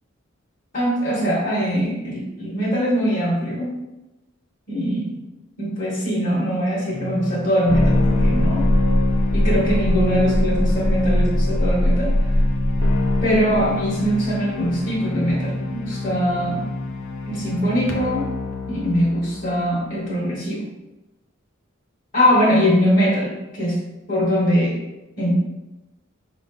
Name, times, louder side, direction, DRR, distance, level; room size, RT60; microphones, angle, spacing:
voice 1, 0.7-3.8 4.7-5.2 5.6-8.7 9.3-12.2 13.2-16.7 17.3-18.3 18.7-20.7 22.1-23.8 24.1-24.8 25.2-25.4, equal, 40° left, -7 dB, 1.1 m, -22 dB
sound 1, 6.9-20.2, left 1 dB, 65° left, 0.6 m, -22 dB
5.0 x 2.5 x 3.5 m, 1.0 s
head